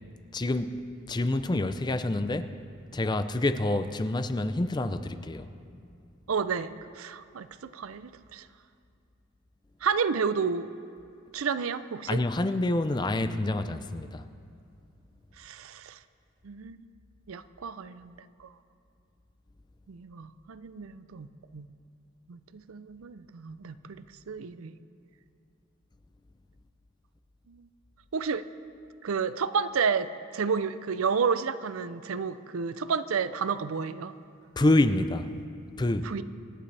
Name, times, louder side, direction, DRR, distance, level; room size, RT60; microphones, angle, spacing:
voice 1, 0.3-0.8 1.1-2.5 2.9-5.5 12.1-14.2 34.6-35.3 35.8-36.1, left 2 dB, 20° left, 0.4 m, -27 dB
voice 2, 6.3-8.5 9.8-10.7 11.3-12.2 15.4-16.0 16.4-16.9 17.3-18.5 19.9-21.7 22.3-24.8 27.5-27.7 28.1-28.4 29.0-34.1 36.0-36.2, right 5 dB, 80° right, 0.5 m, -31 dB
25.5 x 11.5 x 3.3 m
head